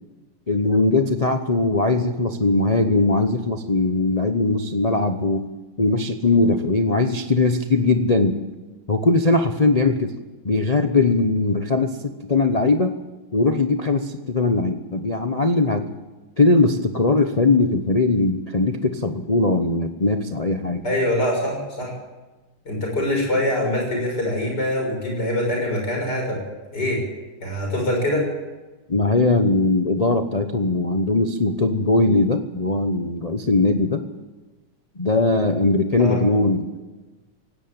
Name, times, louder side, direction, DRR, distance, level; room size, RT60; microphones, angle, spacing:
voice 1, 0.5-5.5 5.8-8.4 8.9-10.1 10.4-12.0 12.3-12.9 13.3-15.9 16.4-20.8 28.9-34.0 35.0-36.8, left 2 dB, 65° left, 6 dB, 0.3 m, -20 dB
voice 2, 20.8-21.9 22.7-26.4 26.7-27.0 27.4-28.3 36.0-36.2, left 1 dB, 45° left, 1 dB, 7.0 m, -24 dB
18.0 x 17.0 x 8.8 m, 1.2 s
omnidirectional pair, 2.4 m